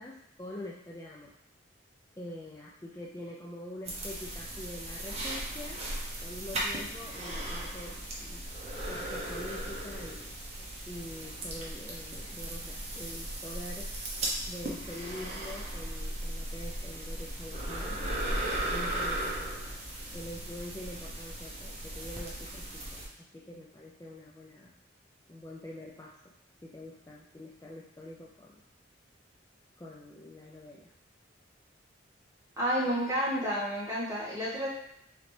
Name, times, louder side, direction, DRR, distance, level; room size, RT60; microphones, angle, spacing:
voice 1, 0.0-1.3 2.2-5.8 6.2-8.5 8.9-10.3 10.8-13.9 14.5-18.0 18.7-19.5 20.1-23.0 23.3-24.7 25.3-26.3 26.6-28.6 29.8-30.9, left 1 dB, 15° left, -4 dB, 0.3 m, -45 dB
sound 1, 3.9-23.1, right 1 dB, 35° right, 0.8 m, -37 dB
voice 2, 32.6-34.7, equal, 15° right, -7 dB, 1.3 m, -30 dB
3.8 x 3.2 x 3.2 m, 0.74 s
head